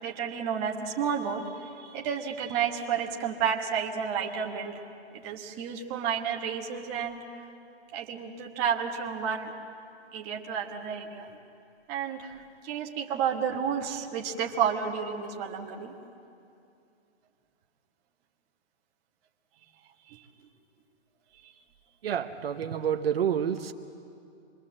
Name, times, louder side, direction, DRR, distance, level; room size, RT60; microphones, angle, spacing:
voice 1, 0.0-4.7 5.2-7.2 7.9-9.5 10.1-11.3 11.9-12.4 12.6-15.9 20.1-20.2 21.4-21.5, right 7 dB, 20° right, 0 dB, 1.3 m, -31 dB
voice 2, 22.0-23.7, right 8 dB, 60° right, 6 dB, 1.0 m, -28 dB
26.0 x 22.5 x 7.6 m, 2.6 s
hypercardioid pair, 165°, 34 cm